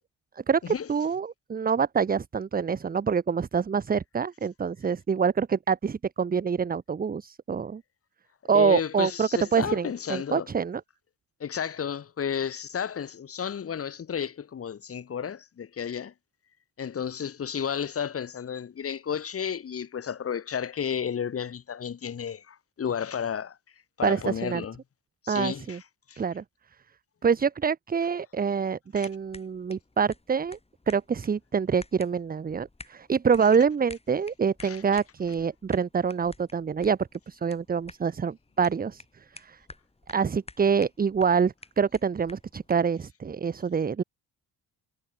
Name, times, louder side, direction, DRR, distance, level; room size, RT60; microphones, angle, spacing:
voice 1, 0.5-7.8 8.5-10.8 24.0-24.6 25.3-25.8 26.2-26.4 27.2-30.6 30.9-37.0 37.3-39.0 39.3-39.6 40.1-44.0, right 6 dB, 20° right, 0.6 m, -26 dB
voice 2, 8.5-10.5 11.4-16.1 16.8-23.6 24.0-24.8 25.2-25.8 26.1-26.2 29.0-29.1 34.6-34.8, left 7 dB, 35° left, 1.1 m, -32 dB
sound 1, 29.0-42.9, left 2 dB, 15° left, 5.3 m, -51 dB
cardioid pair, 105°, 41 cm